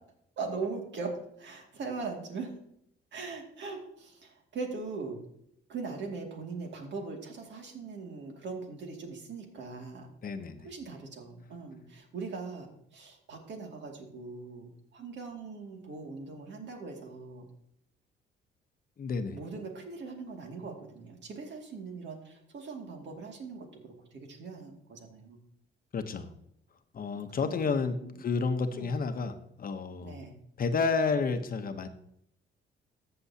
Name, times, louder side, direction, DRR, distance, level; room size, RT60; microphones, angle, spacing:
voice 1, 0.4-2.5 3.1-5.2 5.7-10.1 10.6-17.5 19.3-25.4 27.4-27.7 28.0-28.2 28.7-28.9 30.0-30.3, right 4 dB, 65° right, 2 dB, 2.3 m, -40 dB
voice 2, 10.2-10.7 19.0-19.4 25.9-26.3 26.9-30.3 30.6-31.9, left 4 dB, 45° left, 9 dB, 0.9 m, -31 dB
14.0 x 6.9 x 2.8 m, 0.73 s
cardioid pair, 90°, 20 cm